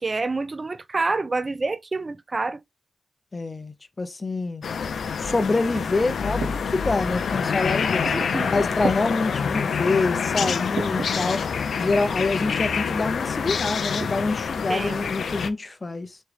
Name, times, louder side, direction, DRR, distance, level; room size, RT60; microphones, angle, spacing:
voice 1, 0.0-2.6 8.1-8.6 14.7-15.0, right 3 dB, 35° right, 0.4 m, -27 dB
voice 2, 3.3-4.6 5.2-8.1 8.4-11.5 11.8-16.2, left 3 dB, 30° left, 0.6 m, -26 dB
sound 1, 4.6-15.5, left 6 dB, 75° left, 0.4 m, -26 dB
sound 2, 5.7-6.6 7.3-7.4 8.0-8.4 8.7-9.0 9.7-9.8 10.4-11.1 12.2-12.3 12.8-13.1 14.0-14.2 14.5-14.6 15.0-15.3, right 4 dB, 75° right, 0.7 m, -33 dB
3.5 x 3.1 x 3.3 m
cardioid pair, 90°, 0 cm